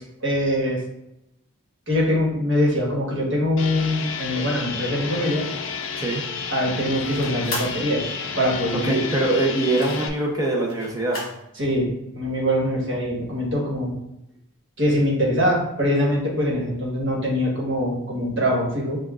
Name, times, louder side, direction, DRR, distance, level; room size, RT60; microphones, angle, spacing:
voice 1, 0.2-0.8 1.9-5.4 6.5-8.0 8.4-8.9 11.6-11.9 12.1-13.9 14.8-19.0, equal, 55° right, -3 dB, 1.2 m, -23 dB
sound 1, 3.6-10.1, left 6 dB, 60° left, 0.4 m, -31 dB
sound 2, 5.1-11.4, left 2 dB, 45° left, 1.5 m, -38 dB
voice 2, 8.7-11.2, right 2 dB, 15° right, -2 dB, 0.6 m, -23 dB
6.8 x 2.3 x 2.4 m, 0.85 s
head